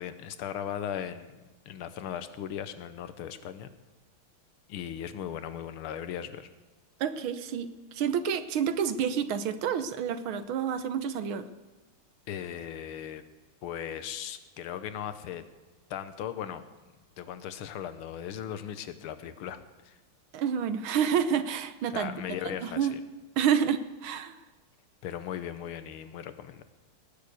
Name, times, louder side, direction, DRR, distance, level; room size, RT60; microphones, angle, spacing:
voice 1, 0.0-1.4 1.7-3.7 4.7-6.5 12.3-13.2 13.6-15.4 15.9-16.6 17.2-20.0 21.9-23.0 25.0-26.6, left 9 dB, 85° left, 11 dB, 1.8 m, -38 dB
voice 2, 7.0-11.5 20.3-22.1 22.5-22.9 23.4-24.4, right 8 dB, 75° right, 11 dB, 1.7 m, -29 dB
19.0 x 6.9 x 8.2 m, 1.2 s
omnidirectional pair, 2.3 m